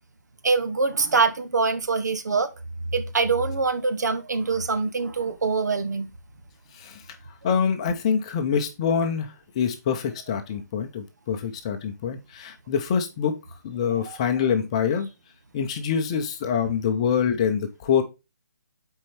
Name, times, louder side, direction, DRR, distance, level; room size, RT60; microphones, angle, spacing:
voice 1, 0.4-2.5 2.9-6.1 14.1-14.2, right 4 dB, 70° right, 1.1 m, -24 dB
voice 2, 7.4-13.4 13.6-15.1 15.5-18.0, left 7 dB, 20° left, 0.7 m, -25 dB
7.5 x 4.5 x 3.3 m
hypercardioid pair, 170°, 10 cm